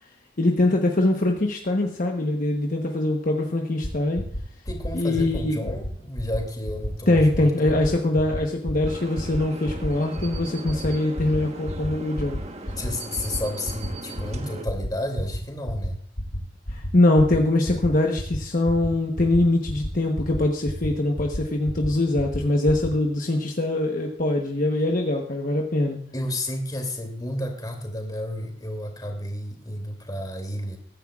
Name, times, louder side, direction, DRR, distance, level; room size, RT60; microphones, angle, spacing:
voice 1, 0.4-4.3 4.9-5.7 7.1-12.4 12.7-12.8 16.7-26.0, left 2 dB, 45° left, 2 dB, 1.1 m, -23 dB
sound 1, 3.8-3.9 4.1-4.4 4.6-4.9 5.1-5.4 5.7-5.9 6.1-6.4 6.6-6.9 7.1-7.4 7.6-7.9 8.2-8.4 8.6-8.9 9.2-9.4 9.6-9.9 10.1-10.4 10.7-10.9 11.1-11.4 11.6-11.9 12.1-12.4 12.6-12.9 13.1-13.4 13.6-13.9 14.1-14.4 14.6-14.9 15.1-15.4 15.6-15.9 16.2-16.4 16.6-16.9 17.1-17.4 17.6-17.9 18.2-18.4 18.6-18.9 19.1-19.4 19.7-19.9 20.1-20.4 20.6-20.9 21.2-21.4 21.7-21.9 22.2-22.4 22.7-22.9, equal, 70° left, 4.9 m, -30 dB
voice 2, 4.7-7.8 12.8-16.0 26.1-30.8, left 1 dB, 20° left, 3 dB, 2.6 m, -31 dB
sound 2, 8.8-14.6, right 2 dB, 35° right, 1.2 m, -39 dB
21.5 x 10.0 x 2.4 m, 0.63 s
head